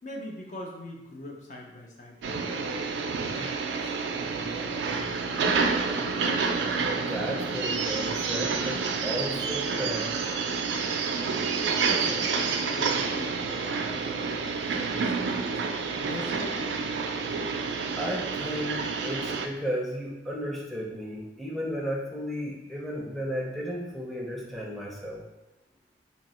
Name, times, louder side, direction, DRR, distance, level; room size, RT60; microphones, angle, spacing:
voice 1, 0.0-2.8 3.3-3.6 4.1-6.3 11.8-15.6 16.0-17.1, left 1 dB, 45° left, 0 dB, 0.5 m, -42 dB
sound 1, 2.2-19.5, right 5 dB, 80° right, 0.3 m, -29 dB
voice 2, 6.7-10.1 18.0-25.2, equal, ahead, -3 dB, 0.6 m, -34 dB
2.9 x 2.7 x 4.1 m, 0.94 s
head